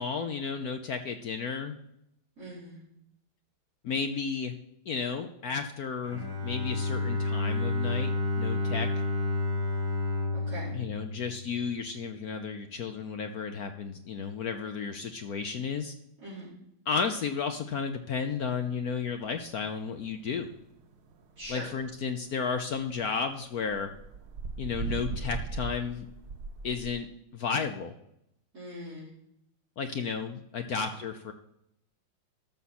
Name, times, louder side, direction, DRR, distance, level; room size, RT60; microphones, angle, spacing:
voice 1, 0.0-1.7 3.8-4.5 4.9-8.1 8.4-9.0 10.7-15.9 16.9-20.5 21.5-23.9 24.6-26.1 26.6-27.1 27.3-27.9 29.8-31.3, left 5 dB, 60° left, 6 dB, 1.0 m, -33 dB
voice 2, 2.4-2.8 10.5-10.7 16.2-16.5 21.4-21.6 28.5-29.1 30.6-30.8, equal, 35° right, -12 dB, 4.8 m, -41 dB
Bowed string instrument, 6.0-12.0, left 2 dB, 10° right, 4.7 m, -30 dB
sound 1, 19.0-22.0 22.3-23.0 23.5-26.9, right 4 dB, 80° right, 0.5 m, -38 dB
12.5 x 7.0 x 4.2 m, 0.78 s
omnidirectional pair, 2.2 m